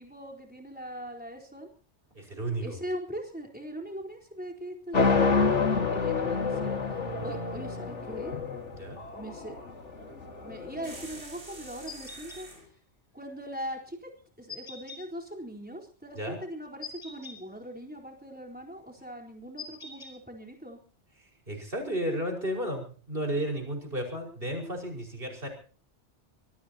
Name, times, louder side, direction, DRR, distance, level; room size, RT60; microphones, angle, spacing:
voice 1, 0.0-1.7 2.6-8.4 9.1-9.6 10.4-12.5 13.1-14.1 14.4-20.8, equal, 10° right, 0 dB, 4.2 m, -41 dB
voice 2, 2.1-2.8 7.2-7.3 8.7-9.0 16.2-16.4 21.5-25.5, right 1 dB, 50° right, 1 dB, 5.8 m, -33 dB
sound 1, 4.9-11.0, left 4 dB, 85° left, 2.3 m, -28 dB
sound 2, 10.8-12.7, right 2 dB, 80° right, 5.4 m, -46 dB
sound 3, 11.9-12.4 14.5-15.0 16.8-17.4 19.6-20.1, left 4 dB, 30° left, 4.2 m, -42 dB
25.0 x 18.5 x 2.9 m, 0.39 s
omnidirectional pair, 1.2 m